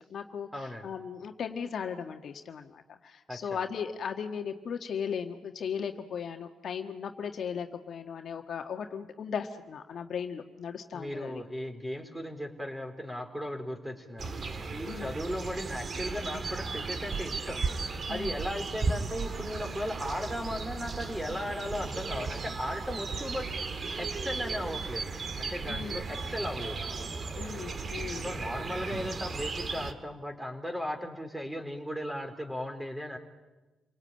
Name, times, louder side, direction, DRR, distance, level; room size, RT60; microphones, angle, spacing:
voice 1, 0.0-11.4 14.8-15.1 18.1-18.4 25.7-26.0 27.4-28.3, left 7 dB, 60° left, 5 dB, 1.6 m, -37 dB
voice 2, 0.5-0.9 3.3-3.6 10.9-14.4 14.7-17.7 18.1-23.5 24.0-26.8 28.2-33.2, equal, 10° right, 5 dB, 4.1 m, -36 dB
sound 1, 14.2-29.9, right 4 dB, 45° right, 1.8 m, -35 dB
28.5 x 18.5 x 8.9 m, 1.2 s
cardioid pair, 70°, 0 cm